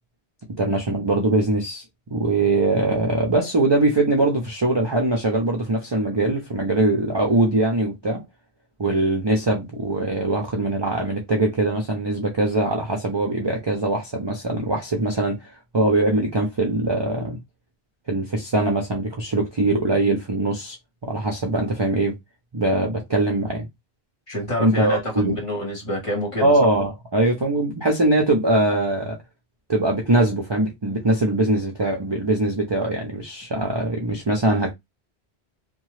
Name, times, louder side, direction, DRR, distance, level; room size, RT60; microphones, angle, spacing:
voice 1, 0.6-1.8 2.1-8.2 8.8-15.4 15.7-17.4 18.1-20.8 21.0-22.1 22.5-23.7 24.6-25.4 26.4-29.2 29.7-34.7, right 2 dB, 35° right, 0.5 m, -22 dB
voice 2, 24.3-26.6, left 1 dB, 30° left, 1.4 m, -27 dB
2.8 x 2.2 x 3.1 m
omnidirectional pair, 1.1 m